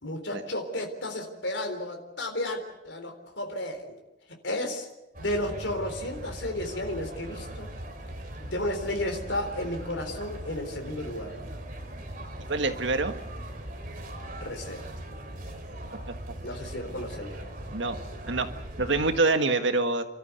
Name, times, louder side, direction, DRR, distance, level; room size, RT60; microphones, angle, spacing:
voice 1, 0.0-4.0 4.4-4.9 5.2-7.7 8.4-11.4 14.4-14.9 16.4-17.4, left 1 dB, 75° left, 3 dB, 3.8 m, -33 dB
sound 1, 5.1-19.2, right 1 dB, 45° right, 3.4 m, -40 dB
voice 2, 12.5-13.1 17.7-18.0 18.3-18.5 18.8-20.0, right 3 dB, 75° right, 7 dB, 1.7 m, -25 dB
29.5 x 13.5 x 8.3 m, 0.99 s
head